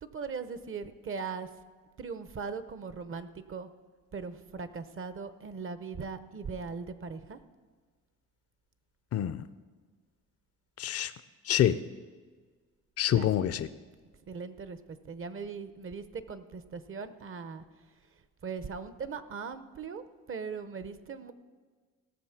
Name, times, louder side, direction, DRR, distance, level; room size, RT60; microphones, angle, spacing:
voice 1, 0.0-1.5 2.0-3.7 4.1-7.4 13.1-13.3 14.3-17.6 18.4-21.3, right 5 dB, 45° right, 12 dB, 0.9 m, -39 dB
voice 2, 9.1-9.4 10.8-11.1 11.5-11.8 13.0-13.7, left 11 dB, 55° left, 13 dB, 0.5 m, -26 dB
17.5 x 7.0 x 5.9 m, 1.5 s
cardioid pair, 90°, 30 cm